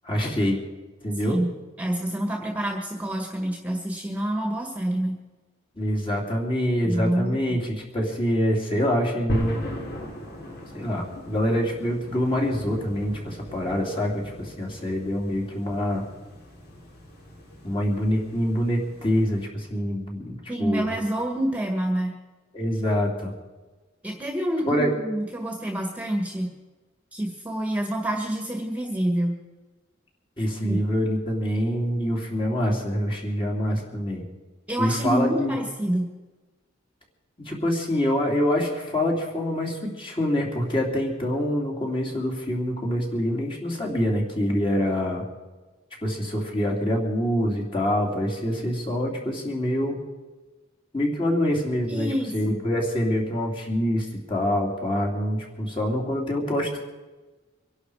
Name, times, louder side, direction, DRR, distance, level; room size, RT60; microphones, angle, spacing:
voice 1, 0.0-0.6 1.0-1.4 5.7-9.6 10.7-16.0 17.6-20.9 22.5-23.3 24.6-24.9 30.4-34.3 34.8-35.5 37.4-45.2 46.0-50.0 50.9-56.8, equal, 25° left, -1 dB, 3.2 m, -25 dB
voice 2, 1.8-5.1 6.8-7.4 20.5-22.1 24.0-26.5 27.1-29.4 30.6-30.8 34.7-36.1 51.9-52.6, right 1 dB, 10° right, 1 dB, 1.7 m, -27 dB
sound 1, 9.3-19.5, equal, 55° left, 3.4 m, -38 dB
24.5 x 11.5 x 4.9 m, 1.2 s
head